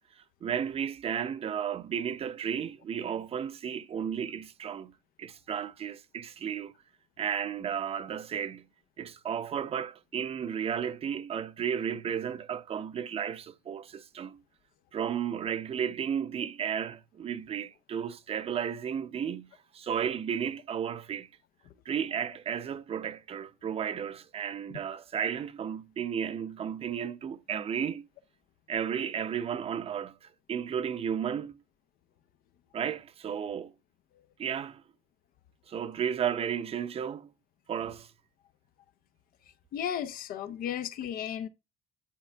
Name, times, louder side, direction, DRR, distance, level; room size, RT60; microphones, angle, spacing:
voice 1, 0.4-6.7 7.2-8.7 9.0-14.4 14.9-21.3 21.8-28.1 28.7-31.6 32.7-33.7 34.4-34.8 35.7-37.3 37.7-38.1, right 8 dB, 40° right, 0.7 m, -33 dB
voice 2, 39.7-41.5, left 9 dB, 70° left, 0.8 m, -34 dB
10.5 x 4.2 x 3.4 m
cardioid pair, 115°, 15 cm